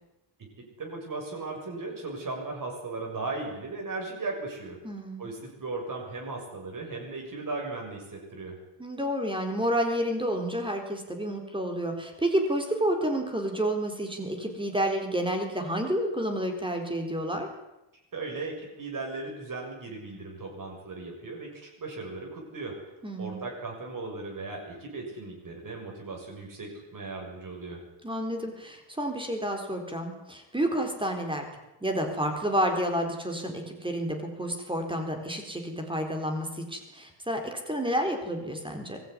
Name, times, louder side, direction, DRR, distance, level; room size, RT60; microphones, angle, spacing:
voice 1, 0.6-4.8 5.2-8.6 18.1-22.8 23.2-27.9, right 3 dB, 40° right, 0 dB, 6.7 m, -37 dB
voice 2, 4.8-5.3 8.8-17.5 23.0-23.4 28.0-31.5 31.8-39.0, right 1 dB, 10° right, 4 dB, 4.0 m, -30 dB
23.5 x 17.0 x 9.8 m, 0.95 s
wide cardioid pair, 170°, 49 cm